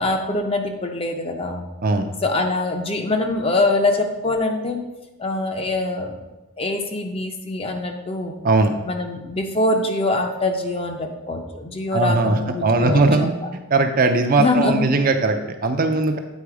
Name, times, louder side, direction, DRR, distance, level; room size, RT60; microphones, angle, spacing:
voice 1, 0.0-1.7 2.2-4.8 5.2-6.2 6.6-8.3 8.8-13.3 14.4-14.8, left 2 dB, 25° left, 4 dB, 0.6 m, -23 dB
voice 2, 11.9-13.3 13.7-16.2, right 3 dB, 40° right, 6 dB, 0.5 m, -19 dB
8.3 x 4.0 x 4.8 m, 1.1 s
head